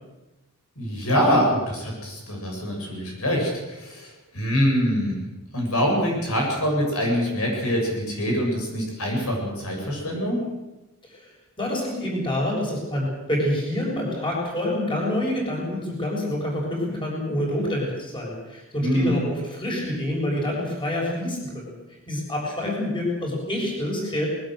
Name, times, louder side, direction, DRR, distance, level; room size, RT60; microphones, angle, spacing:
voice 1, 0.8-5.2 5.5-10.4 18.8-19.2, equal, 75° left, 0 dB, 7.7 m, -24 dB
voice 2, 11.6-21.7 22.1-24.3, left 1 dB, 20° left, -2 dB, 7.1 m, -27 dB
21.0 x 19.5 x 8.0 m, 1.0 s
head